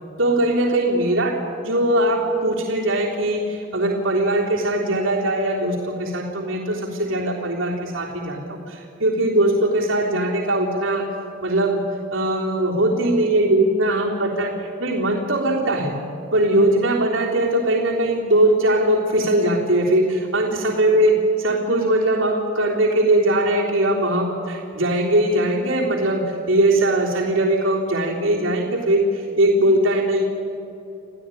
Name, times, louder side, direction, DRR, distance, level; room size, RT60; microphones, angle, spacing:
voice 1, 0.2-11.1 11.4-15.9 16.3-30.2, right 1 dB, 75° right, -3 dB, 3.6 m, -20 dB
27.5 x 16.0 x 10.0 m, 2.9 s
head